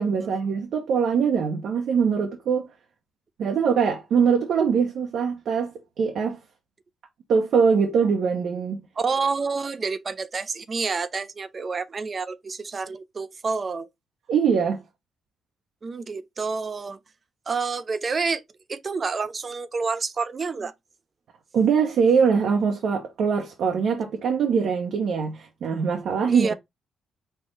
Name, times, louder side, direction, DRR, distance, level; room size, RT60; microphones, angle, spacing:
voice 1, 0.0-2.7 3.4-6.4 7.3-8.9 14.3-14.8 21.5-26.5, right 6 dB, 70° right, 0.8 m, -22 dB
voice 2, 9.0-13.9 15.8-17.0 17.5-18.4 18.7-20.7 26.3-26.5, right 4 dB, 45° right, 0.6 m, -28 dB
4.5 x 2.3 x 4.4 m
hypercardioid pair, 50°, 0 cm